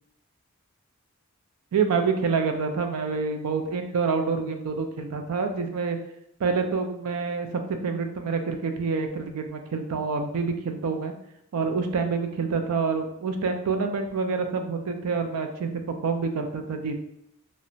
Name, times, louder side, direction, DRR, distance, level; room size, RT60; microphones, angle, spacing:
voice 1, 1.7-6.0 6.4-11.1 11.5-15.7 16.0-17.0, right 5 dB, 90° right, 6 dB, 0.4 m, -27 dB
2.8 x 2.1 x 2.6 m, 0.77 s
head